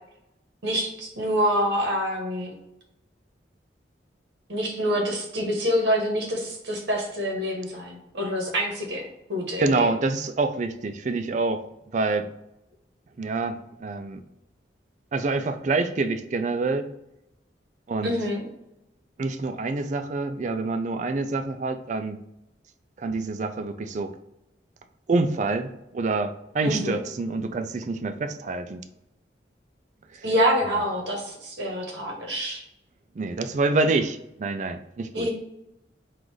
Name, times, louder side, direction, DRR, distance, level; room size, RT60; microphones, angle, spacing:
voice 1, 0.6-2.5 4.5-9.0 9.3-9.9 18.0-18.4 26.6-27.0 30.2-32.6 35.1-35.3, equal, 75° right, 1 dB, 1.2 m, -26 dB
voice 2, 9.6-11.6 11.9-12.3 13.2-14.2 15.1-16.9 17.9-18.1 19.2-22.2 23.0-24.1 25.1-28.8 33.2-35.3, right 3 dB, 40° right, 9 dB, 0.3 m, -26 dB
3.8 x 2.5 x 4.7 m, 0.85 s
head